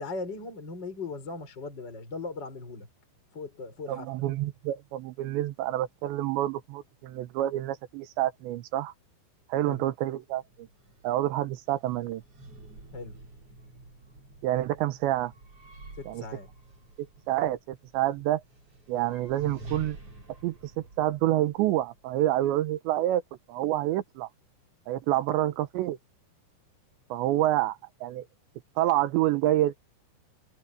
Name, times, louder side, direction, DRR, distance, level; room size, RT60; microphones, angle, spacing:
voice 1, 0.0-2.9 3.3-4.3 9.6-9.8 12.9-13.2 16.0-16.5, left 3 dB, 25° left, 5.3 m, -38 dB
voice 2, 3.9-8.9 9.5-10.7 11.0-12.2 14.4-15.3 16.1-16.2 17.0-18.4 18.9-20.0 20.4-23.2 23.5-24.3 24.9-26.0 27.1-28.3 28.8-29.7, right 14 dB, 85° right, 3.1 m, -28 dB
sound 1, 10.3-22.5, right 2 dB, 35° right, 5.7 m, -48 dB
omnidirectional pair, 5.3 m